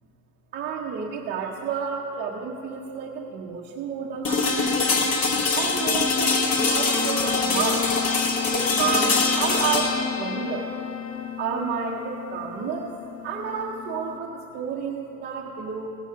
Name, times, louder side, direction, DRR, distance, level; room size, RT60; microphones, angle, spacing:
voice 1, 0.5-5.1 5.5-7.9 8.5-10.7 11.4-12.9 13.2-16.0, right 6 dB, 20° right, -2 dB, 0.5 m, -31 dB
sound 1, 4.2-14.1, left 4 dB, 35° left, 1.1 m, -24 dB
16.5 x 6.1 x 5.5 m, 3.0 s
supercardioid pair, 140°, 49 cm